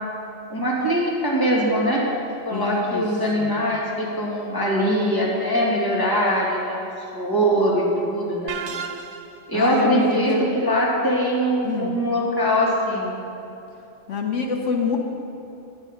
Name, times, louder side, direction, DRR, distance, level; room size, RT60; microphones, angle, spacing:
voice 1, 0.5-2.0 2.5-6.9 7.1-8.6 9.5-13.2, equal, 20° left, -5 dB, 2.2 m, -22 dB
voice 2, 2.5-3.0 3.4-3.5 9.5-10.5 11.6-12.0 14.1-15.0, left 5 dB, 85° left, 2 dB, 1.4 m, -26 dB
sound 1, 8.5-9.5, right 6 dB, 80° right, 1.0 m, -33 dB
10.0 x 9.5 x 5.8 m, 2.9 s
omnidirectional pair, 1.2 m